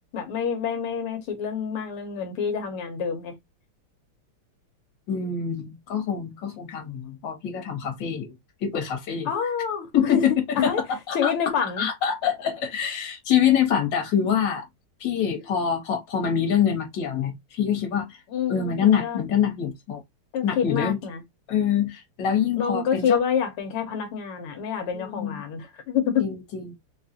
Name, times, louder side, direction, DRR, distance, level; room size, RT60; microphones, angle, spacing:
voice 1, 0.0-3.3 9.3-10.8 11.1-11.9 18.3-19.2 20.3-21.2 22.5-26.3, left 7 dB, 85° left, 1.8 m, -27 dB
voice 2, 5.1-8.3 8.6-9.3 9.9-10.3 10.6-11.3 11.6-14.7 15.0-18.2 18.5-20.0 20.4-21.0 21.5-23.2 24.9-25.4 26.2-26.7, left 8 dB, 60° left, 1.9 m, -25 dB
4.3 x 2.4 x 2.7 m
omnidirectional pair, 2.4 m